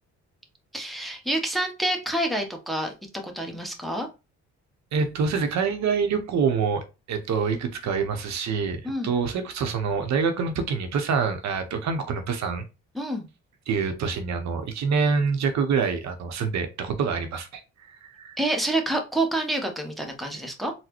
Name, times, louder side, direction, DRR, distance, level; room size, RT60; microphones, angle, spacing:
voice 1, 0.7-2.9 3.2-4.1 8.8-9.1 12.9-13.3 18.4-20.7, right 1 dB, ahead, 0.8 m, -27 dB
voice 2, 4.9-12.6 13.7-17.6 17.9-18.4, right 5 dB, 65° right, 0.7 m, -26 dB
4.0 x 2.1 x 2.9 m
cardioid pair, 90°, 30 cm